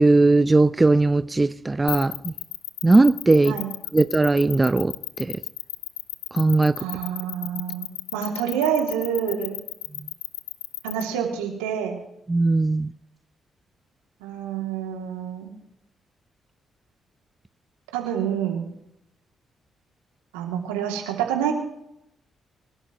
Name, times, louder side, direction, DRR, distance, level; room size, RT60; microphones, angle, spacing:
voice 1, 0.0-2.3 2.8-3.6 3.9-4.9 5.2-5.4 6.3-6.8 12.3-12.9, right 2 dB, 25° right, 0.6 m, -18 dB
sound 1, 1.9-11.0, left 17 dB, 90° left, 0.5 m, -33 dB
voice 2, 6.8-9.5 10.8-12.0 14.2-15.5 17.9-18.7 20.3-21.5, right 8 dB, 90° right, 2.7 m, -27 dB
26.5 x 12.5 x 3.1 m
hypercardioid pair, 45°, 0 cm